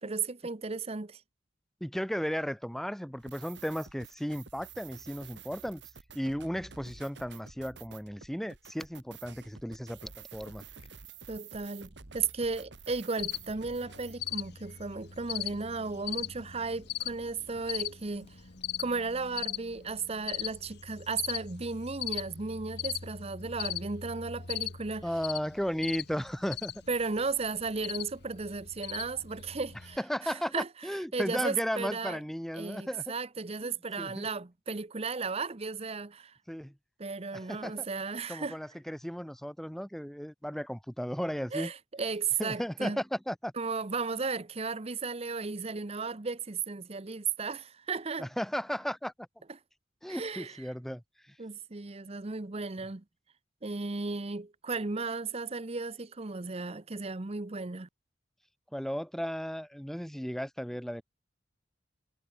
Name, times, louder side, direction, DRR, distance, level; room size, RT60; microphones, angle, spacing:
voice 1, 0.0-1.2 11.3-18.4 18.8-25.1 26.9-30.7 31.1-32.2 32.5-36.4 37.0-38.6 41.5-43.0 43.6-48.3 50.1-50.6 51.4-53.0 53.6-57.9, right 4 dB, 35° right, 0.9 m, -35 dB
voice 2, 1.8-5.8 6.1-10.6 25.0-26.7 30.0-33.1 33.6-34.3 36.5-36.7 37.3-37.9 38.3-41.7 42.4-43.5 48.2-49.3 50.0-51.0 58.7-61.0, equal, ahead, 0.9 m, -35 dB
sound 1, 3.2-14.1, right 6 dB, 65° right, 1.7 m, -50 dB
sound 2, 8.8-18.9, left 1 dB, 35° left, 2.8 m, -62 dB
Cricket, 13.2-30.0, left 10 dB, 60° left, 1.5 m, -40 dB
head